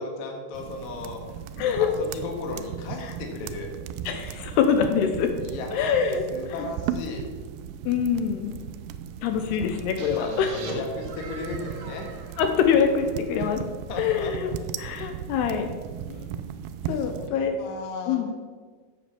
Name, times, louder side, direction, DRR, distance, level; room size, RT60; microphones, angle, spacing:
voice 1, 0.0-3.8 5.4-6.0 6.3-7.2 9.4-9.8 10.2-12.1 13.4-13.5 13.9-14.7 16.8-18.2, left 3 dB, 55° left, 2 dB, 2.4 m, -36 dB
sound 1, 0.5-17.3, right 9 dB, 85° right, 2.7 m, -37 dB
voice 2, 1.6-1.9 3.0-3.1 4.1-5.3 5.7-6.2 6.5-6.7 7.8-8.6 9.2-10.5 12.4-13.6 14.0-14.5 14.8-15.7 16.1-16.3 16.9-17.6 18.1-18.3, left 7 dB, 80° left, 6 dB, 2.9 m, -24 dB
sound 2, 10.0-13.7, right 3 dB, 65° right, 1.5 m, -43 dB
8.4 x 8.1 x 7.1 m, 1.5 s
omnidirectional pair, 4.7 m